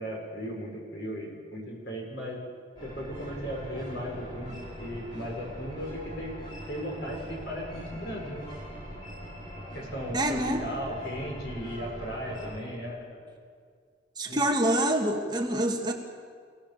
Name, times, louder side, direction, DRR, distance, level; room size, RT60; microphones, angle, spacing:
voice 1, 0.0-2.4 2.8-6.4 6.7-8.4 9.7-13.2 14.3-14.4, equal, 60° left, -1 dB, 6.5 m, -36 dB
sound 1, 2.8-12.6, equal, 25° left, 6.8 m, -42 dB
voice 2, 10.1-10.6 14.2-15.9, right 1 dB, 25° right, 2 dB, 1.8 m, -26 dB
28.0 x 18.0 x 7.1 m, 2.1 s
head